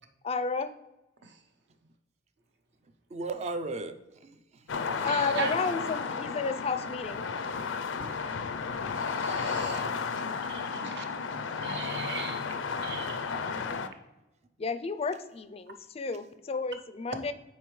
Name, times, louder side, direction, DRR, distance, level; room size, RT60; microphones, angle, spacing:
voice 1, 0.2-0.7 4.9-7.3 9.6-9.8 14.6-17.3, left 4 dB, 30° left, 12 dB, 0.4 m, -32 dB
voice 2, 3.1-5.1 8.0-8.2 10.7-12.1, right 3 dB, 35° right, 9 dB, 0.5 m, -40 dB
sound 1, 4.7-13.9, left 5 dB, 85° left, 0.5 m, -33 dB
voice 3, 5.0-5.5 8.9-9.9 10.5-11.0 11.6-12.4 12.8-13.5, right 5 dB, 65° right, 5 dB, 0.9 m, -38 dB
9.3 x 4.4 x 3.1 m, 1.0 s
head